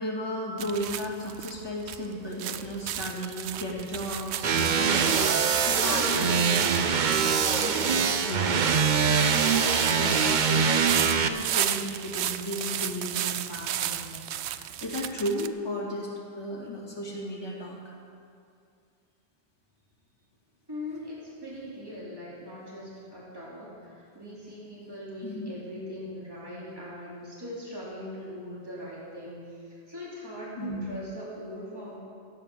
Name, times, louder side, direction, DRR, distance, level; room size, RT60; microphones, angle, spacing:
voice 1, 0.0-16.1 16.4-17.8 25.2-25.5 30.6-30.9, equal, 25° left, -5 dB, 2.4 m, -35 dB
sound 1, 0.6-15.5, right 11 dB, 80° right, 0.8 m, -35 dB
sound 2, 4.4-11.3, right 6 dB, 50° right, 0.7 m, -23 dB
voice 2, 20.7-32.0, left 1 dB, 20° right, -7 dB, 3.2 m, -40 dB
14.5 x 9.1 x 6.9 m, 2.4 s
omnidirectional pair, 1.1 m